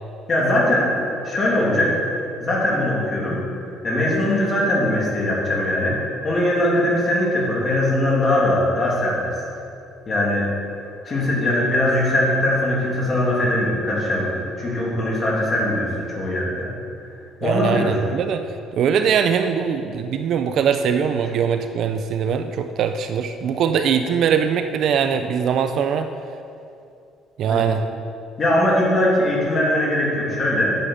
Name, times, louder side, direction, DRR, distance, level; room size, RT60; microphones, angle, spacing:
voice 1, 0.3-2.0 2.4-6.0 6.2-9.6 10.1-10.7 11.0-16.7 17.4-18.0 27.4-27.6 28.4-30.8, left 1 dB, 25° left, -4 dB, 2.7 m, -21 dB
voice 2, 17.4-18.5 18.7-26.1 27.4-27.9, right 7 dB, 55° right, 8 dB, 0.5 m, -21 dB
10.0 x 8.3 x 5.8 m, 2.6 s
cardioid pair, 150°, 0 cm